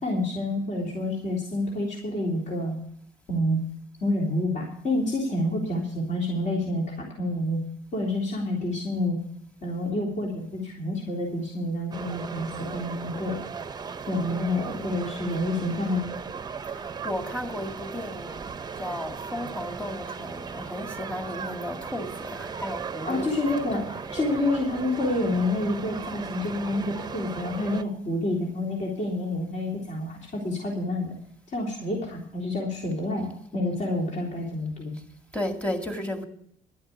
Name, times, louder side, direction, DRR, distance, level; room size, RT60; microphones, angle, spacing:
voice 1, 0.0-2.8 3.3-3.6 4.0-7.6 7.9-9.2 9.6-13.4 14.1-16.1 23.1-31.1 31.5-35.0, left 1 dB, 45° left, 3.7 m, -28 dB
sound 1, 11.9-27.8, right 6 dB, 25° right, 0.7 m, -37 dB
voice 2, 14.3-15.2 16.7-18.5 18.7-23.4 23.9-24.1 35.3-36.3, left 1 dB, 10° left, 2.1 m, -34 dB
12.0 x 8.0 x 8.5 m
cardioid pair, 110°, 17 cm